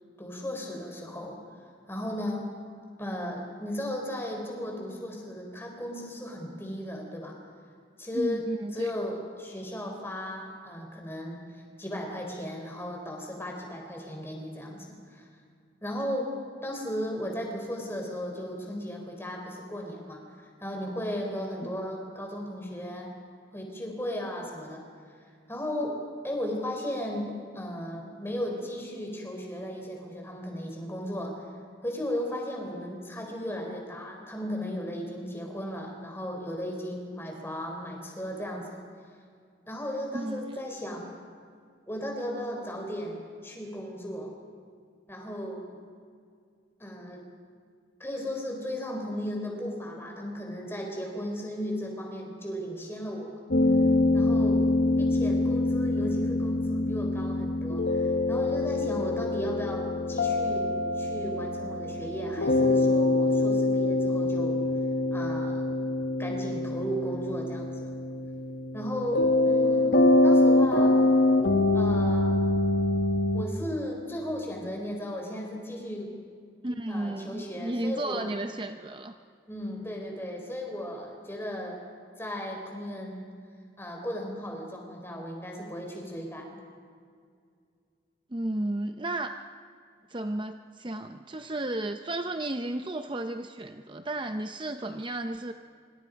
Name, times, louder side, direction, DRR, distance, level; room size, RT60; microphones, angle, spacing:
voice 1, 0.2-1.4 1.9-2.5 3.0-7.4 8.0-11.4 11.8-15.3 15.8-16.3 16.6-23.1 23.5-24.8 25.5-26.0 26.2-31.4 31.8-38.8 39.7-41.1 41.9-44.3 45.1-45.9 46.8-47.2 48.0-53.4 54.1-54.7 55.0-64.6 65.1-65.8 66.2-67.9 68.7-71.0 71.7-72.5 73.3-76.1 76.9-78.3 79.5-81.8 82.2-83.3 83.8-86.6, equal, 15° left, 1 dB, 4.2 m, -35 dB
voice 2, 8.1-8.9 21.6-21.8 40.1-40.6 76.6-79.2 88.3-89.3 90.1-95.5, right 1 dB, 25° right, 7 dB, 0.7 m, -33 dB
sound 1, 53.5-73.4, left 2 dB, 70° left, 1.5 m, -25 dB
26.5 x 25.5 x 5.3 m, 2.2 s
head